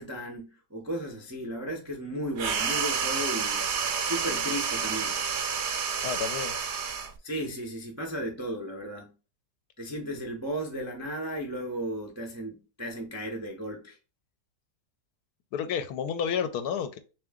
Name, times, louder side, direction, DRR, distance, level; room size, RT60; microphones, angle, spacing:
voice 1, 0.0-3.7 4.0-5.2 7.2-9.1 9.8-14.0, equal, 20° right, 0.4 m, -35 dB
sound 1, 2.4-7.2, right 6 dB, 60° right, 0.7 m, -29 dB
voice 2, 6.0-6.6 15.5-17.0, left 7 dB, 75° left, 1.1 m, -30 dB
3.6 x 3.0 x 3.5 m
omnidirectional pair, 1.8 m